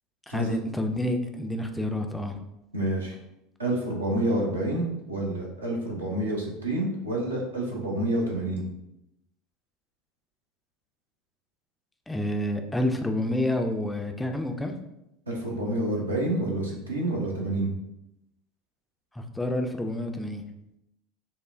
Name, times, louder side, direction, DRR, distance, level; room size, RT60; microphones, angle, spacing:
voice 1, 0.3-2.4 12.1-14.7 19.1-20.4, left 1 dB, 10° left, 5 dB, 0.4 m, -28 dB
voice 2, 2.7-3.1 3.6-8.6 15.3-17.7, right 1 dB, 85° right, -2 dB, 0.7 m, -28 dB
5.3 x 2.1 x 2.4 m, 0.85 s
figure-of-eight pair, 70°, 0 cm